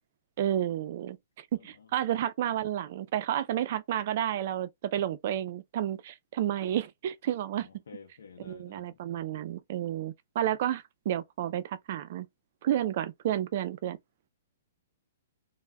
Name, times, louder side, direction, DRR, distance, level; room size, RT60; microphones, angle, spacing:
voice 1, 0.4-7.7 8.4-12.3 12.6-14.0, right 11 dB, 55° right, 0.4 m, -31 dB
voice 2, 1.6-1.9 7.5-9.0, left 5 dB, 85° left, 0.5 m, -51 dB
2.1 x 2.1 x 3.4 m
hypercardioid pair, 145°, 0 cm